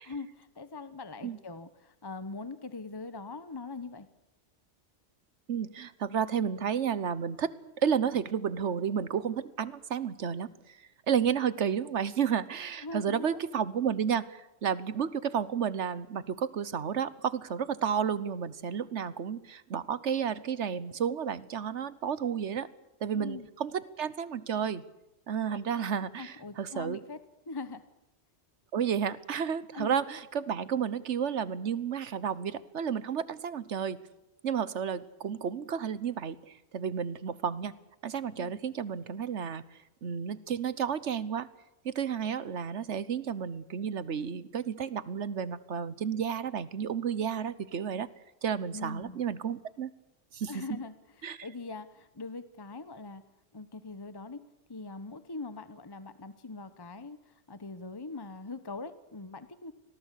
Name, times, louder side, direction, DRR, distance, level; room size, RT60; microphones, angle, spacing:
voice 1, 0.0-4.1 12.8-13.4 23.1-23.5 25.5-25.6 26.2-27.2 27.5-27.8 29.7-29.9 38.4-38.6 48.7-49.2 50.5-53.2 53.5-54.4 54.7-59.7, left 3 dB, 20° left, 12 dB, 1.0 m, -42 dB
voice 2, 5.5-7.6 7.8-10.8 11.1-22.7 23.0-24.8 25.3-27.0 28.7-34.0 34.4-37.7 38.0-39.6 40.0-41.5 41.8-48.1 48.4-49.9 50.3-50.6 51.2-51.5, right 7 dB, 85° right, 17 dB, 1.4 m, -32 dB
26.0 x 18.5 x 8.4 m, 0.92 s
omnidirectional pair, 1.2 m